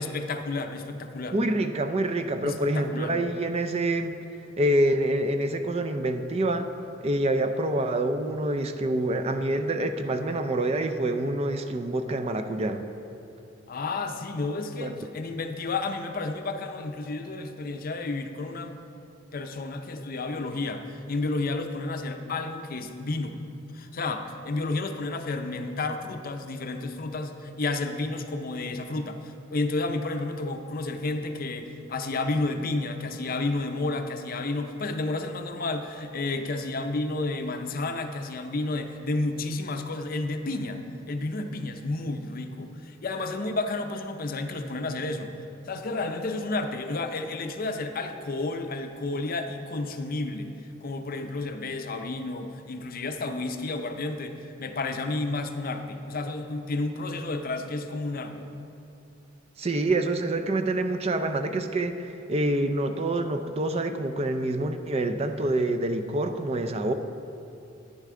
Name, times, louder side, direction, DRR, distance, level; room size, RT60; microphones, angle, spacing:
voice 1, 0.0-1.4 2.4-3.1 13.7-18.7 19.3-23.4 23.7-40.8 41.1-45.3 45.7-50.5 50.8-58.5, left 2 dB, 45° left, 6 dB, 0.6 m, -31 dB
voice 2, 1.3-4.1 4.6-6.7 7.0-12.8 14.8-14.9 59.6-66.9, right 1 dB, 30° right, 7 dB, 0.4 m, -26 dB
10.0 x 10.0 x 3.7 m, 2.7 s
head